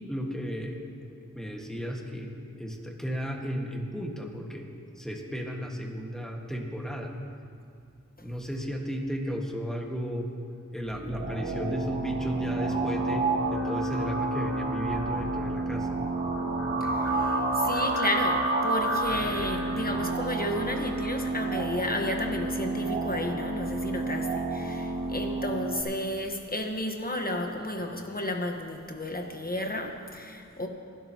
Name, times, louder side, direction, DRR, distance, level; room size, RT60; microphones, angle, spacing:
voice 1, 0.1-2.3 2.6-4.7 5.0-7.1 8.2-10.3 10.7-15.9, equal, ahead, 0 dB, 1.6 m, -34 dB
sound 1, 10.8-25.8, right 2 dB, 40° right, 2.7 m, -29 dB
voice 2, 16.8-30.7, left 1 dB, 30° left, 3 dB, 1.2 m, -32 dB
22.5 x 12.0 x 3.0 m, 2.4 s
wide cardioid pair, 95°, 31 cm